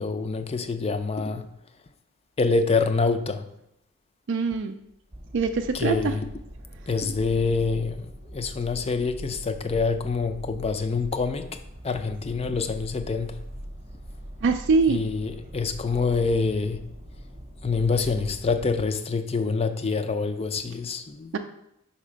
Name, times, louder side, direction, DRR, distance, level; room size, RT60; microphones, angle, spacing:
voice 1, 0.0-1.5 2.4-3.5 5.7-6.3 6.9-13.4 14.9-16.8 17.6-21.3, left 4 dB, 30° left, 0.4 m, -26 dB
voice 2, 4.3-4.7 5.3-6.1 14.4-15.0 21.3-21.4, right 4 dB, 55° right, 0.4 m, -23 dB
sound 1, 5.1-18.9, equal, 30° right, 0.9 m, -42 dB
5.5 x 4.2 x 5.0 m
head